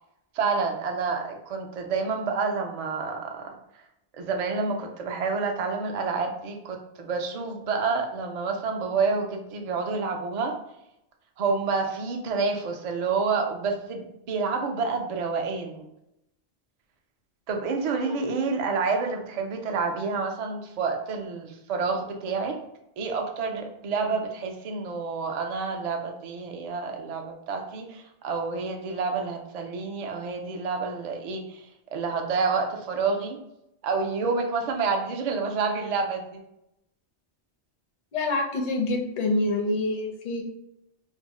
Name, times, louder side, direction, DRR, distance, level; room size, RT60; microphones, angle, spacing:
voice 1, 0.3-3.4 4.1-10.5 11.4-15.8 17.5-22.6 23.0-33.4 33.8-36.4, right 4 dB, 55° right, 3 dB, 0.4 m, -28 dB
voice 2, 17.9-18.2 38.1-40.4, left 2 dB, 50° left, 2 dB, 0.5 m, -27 dB
2.6 x 2.0 x 3.5 m, 0.84 s
omnidirectional pair, 1.1 m